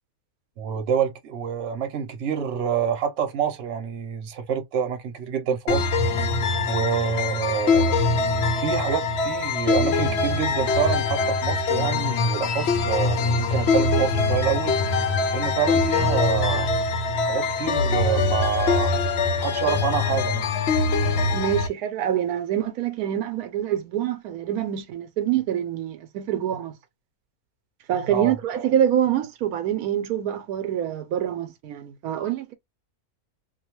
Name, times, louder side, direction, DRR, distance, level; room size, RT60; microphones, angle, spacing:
voice 1, 0.6-5.9 6.7-8.0 8.6-14.8 15.3-16.7 17.2-19.0 19.3-20.5 28.1-28.4, right 8 dB, 60° right, 1.0 m, -27 dB
sound 1, 5.7-21.7, left 4 dB, 60° left, 0.7 m, -23 dB
voice 2, 21.3-26.7 27.9-32.5, right 10 dB, 80° right, 1.1 m, -25 dB
2.6 x 2.3 x 2.8 m
omnidirectional pair, 1.5 m